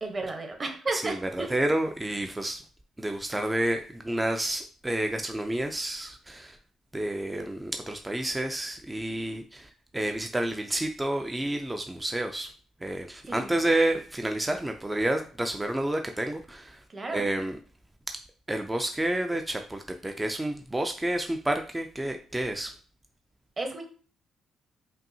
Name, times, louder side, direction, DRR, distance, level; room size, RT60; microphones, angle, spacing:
voice 1, 0.0-1.6 13.3-13.5 16.9-17.2 23.6-23.8, right 3 dB, 30° right, 4 dB, 1.0 m, -33 dB
voice 2, 0.9-2.6 3.0-6.6 6.9-12.5 12.8-16.8 17.1-17.6 18.5-22.7, right 1 dB, 15° right, 5 dB, 0.4 m, -30 dB
5.4 x 2.6 x 2.7 m, 0.41 s
cardioid pair, 90°, 0 cm